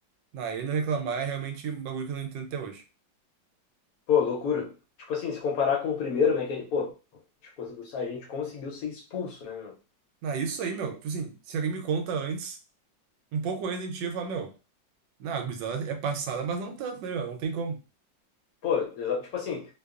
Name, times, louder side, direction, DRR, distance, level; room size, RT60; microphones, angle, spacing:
voice 1, 0.3-2.8 10.2-12.6 13.3-14.5 15.2-17.8, right 6 dB, 80° right, 1.2 m, -31 dB
voice 2, 4.1-4.7 5.1-6.9 7.6-9.7 18.6-19.7, left 6 dB, 65° left, 0.9 m, -28 dB
2.9 x 2.2 x 2.3 m
omnidirectional pair, 2.0 m